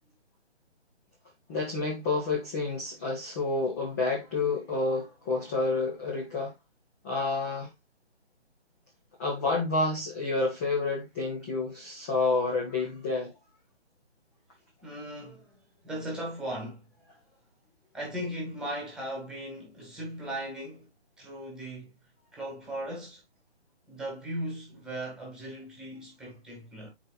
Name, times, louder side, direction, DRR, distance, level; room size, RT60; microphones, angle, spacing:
voice 1, 1.5-6.5 7.0-7.7 9.2-13.3, left 3 dB, 15° left, 0.9 m, -29 dB
voice 2, 14.8-15.5 15.8-16.9 17.9-20.9 21.2-21.9 22.3-23.2 23.9-26.9, right 1 dB, ahead, 1.8 m, -37 dB
10.0 x 4.7 x 2.3 m
figure-of-eight pair, 155°, 34 cm